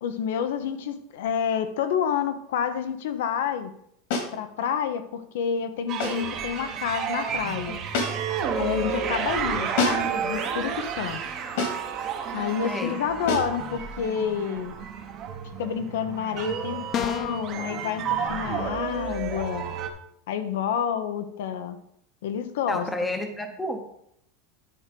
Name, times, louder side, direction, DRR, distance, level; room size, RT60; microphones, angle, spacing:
voice 1, 0.0-3.7 4.3-7.8 8.6-11.2 12.3-14.7 15.6-19.6 20.3-21.8 22.2-23.2, left 8 dB, 85° left, 9 dB, 1.0 m, -29 dB
sound 1, 4.1-4.4 6.0-6.3 7.9-8.4 9.8-10.2 11.6-11.9 13.3-13.6, left 3 dB, 65° left, 2.2 m, -28 dB
sound 2, 5.9-19.9, right 7 dB, 30° right, 1.0 m, -31 dB
voice 2, 12.6-12.9 22.7-23.8, left 1 dB, 5° left, 5 dB, 0.9 m, -30 dB
sound 3, 16.9-17.5, left 8 dB, 25° left, 0.5 m, -28 dB
10.5 x 4.7 x 5.2 m, 0.71 s
supercardioid pair, 170°, 0 cm